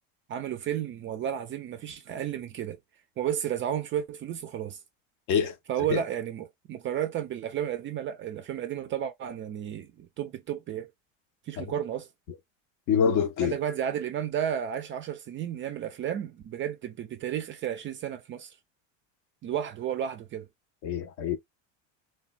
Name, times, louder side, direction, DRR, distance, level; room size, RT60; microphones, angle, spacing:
voice 1, 0.3-2.8 3.2-4.8 5.7-10.9 11.5-12.1 13.4-18.5 19.4-20.5, right 10 dB, 30° right, 0.4 m, -32 dB
voice 2, 12.9-13.6 20.8-21.4, left 7 dB, 50° left, 0.6 m, -25 dB
3.2 x 2.2 x 2.4 m
supercardioid pair, 125°, 39 cm